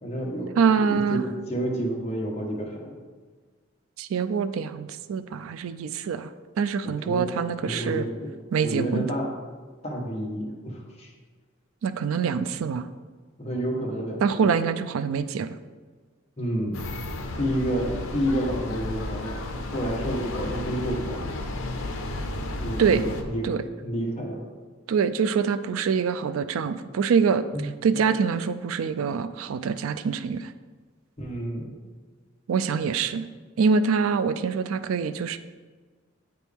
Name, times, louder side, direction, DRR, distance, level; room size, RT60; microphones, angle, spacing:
voice 1, 0.0-3.0 6.8-7.3 7.6-8.1 8.6-9.3 9.8-11.1 13.4-14.5 16.4-16.8 17.4-19.4 19.7-21.2 22.6-23.5 23.8-24.4 27.5-27.7 31.2-31.7, equal, 30° left, -2 dB, 1.3 m, -30 dB
voice 2, 0.6-1.3 4.0-6.3 6.6-8.1 8.5-9.1 11.8-12.9 14.2-15.6 22.8-23.0 23.4-23.6 24.9-27.4 27.8-30.5 32.5-33.3 33.6-35.4, right 6 dB, 80° right, 12 dB, 0.3 m, -25 dB
sound 1, 16.7-23.2, left 2 dB, 80° left, 0.7 m, -33 dB
9.3 x 4.5 x 3.5 m, 1.4 s
head